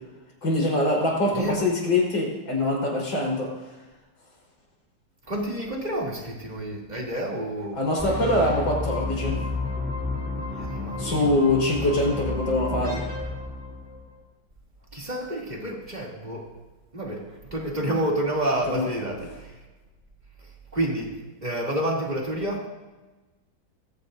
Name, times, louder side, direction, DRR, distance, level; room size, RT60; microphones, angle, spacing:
voice 1, 0.4-3.5 7.8-9.4 11.0-13.0 18.7-18.9, left 1 dB, 75° left, -2 dB, 5.1 m, -24 dB
voice 2, 1.3-1.6 5.3-7.9 10.5-11.3 14.9-16.5 16.9-19.6 20.4-22.7, right 1 dB, 20° right, -2 dB, 2.9 m, -29 dB
sound 1, 8.0-14.1, left 3 dB, 5° right, 3.7 m, -31 dB
22.0 x 15.0 x 2.7 m, 1.2 s
omnidirectional pair, 2.1 m